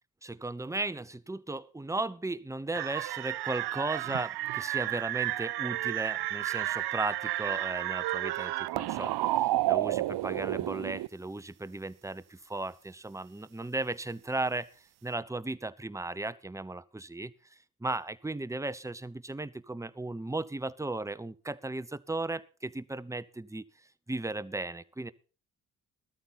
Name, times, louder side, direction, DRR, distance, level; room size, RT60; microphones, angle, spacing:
voice 1, 0.2-14.7 15.0-17.3 17.8-23.6 24.1-25.1, right 2 dB, 5° right, 15 dB, 0.8 m, -36 dB
sound 1, 2.7-11.1, right 15 dB, 50° right, 0.6 m, -31 dB
14.5 x 13.0 x 4.2 m, 0.37 s
hypercardioid pair, 40°, 49 cm